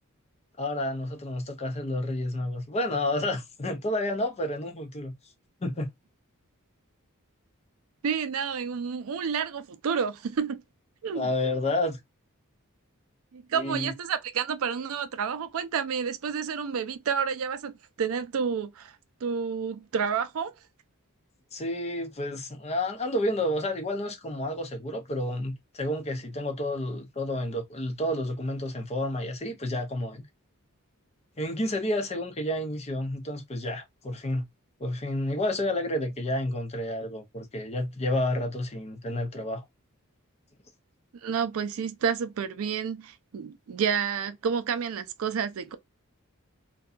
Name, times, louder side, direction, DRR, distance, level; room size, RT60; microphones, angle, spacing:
voice 1, 0.6-5.1 5.6-5.9 11.1-12.0 13.5-13.9 21.5-30.2 31.4-34.5 34.8-39.6, left 1 dB, 30° left, 0.6 m, -30 dB
voice 2, 8.0-10.6 11.0-11.3 13.3-19.0 19.2-20.5 41.2-45.8, right 6 dB, 70° right, 0.4 m, -30 dB
2.7 x 2.2 x 2.4 m
head